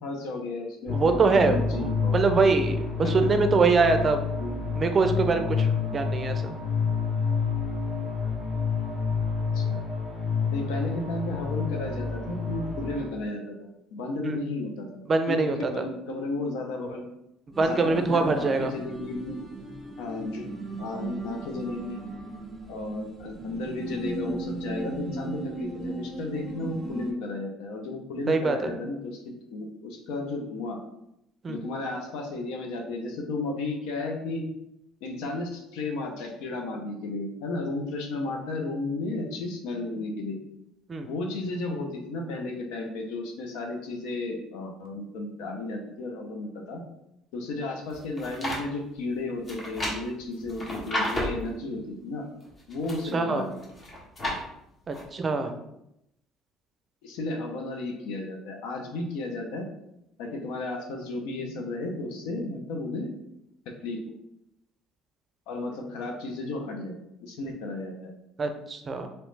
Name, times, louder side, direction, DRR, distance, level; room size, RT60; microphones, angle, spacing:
voice 1, 0.0-2.2 3.0-3.4 4.4-4.6 5.8-6.0 9.5-9.8 10.5-15.0 15.3-17.1 17.6-19.4 20.0-20.5 20.8-22.0 22.7-30.8 31.5-34.5 35.0-40.4 41.1-46.8 47.3-52.2 52.7-53.6 55.4-55.5 57.0-59.7 60.2-63.1 63.7-64.0 65.5-66.9 67.2-68.1, left 2 dB, 80° left, 2 dB, 0.7 m, -33 dB
sound 1, 0.9-13.1, left 5 dB, 50° left, 1.4 m, -29 dB
voice 2, 0.9-4.2 4.8-5.7 5.9-6.6 14.2-14.4 15.1-15.6 17.6-18.7 28.3-28.7 31.4-31.6 40.9-41.1 53.1-53.5 54.9-55.6 68.4-69.1, right 4 dB, 35° right, 7 dB, 0.4 m, -24 dB
sound 2, 17.5-27.1, right 2 dB, 15° right, 1.0 m, -37 dB
Page Turning, 47.9-48.6 49.5-51.5 52.4-53.1 53.6-54.4 54.9-55.0, left 1 dB, 30° left, 1.2 m, -32 dB
3.0 x 3.0 x 3.2 m, 0.82 s
supercardioid pair, 95°, 0 cm